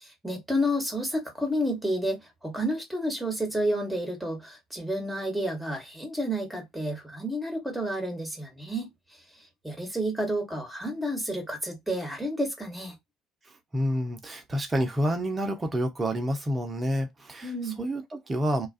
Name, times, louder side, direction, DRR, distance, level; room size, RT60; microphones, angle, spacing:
voice 1, 0.0-8.9 9.6-12.9 17.4-17.8, equal, 5° right, 1.2 m, -30 dB
voice 2, 13.7-18.7, equal, 25° right, 0.7 m, -28 dB
2.3 x 2.3 x 2.4 m
figure-of-eight pair, 55°, 0 cm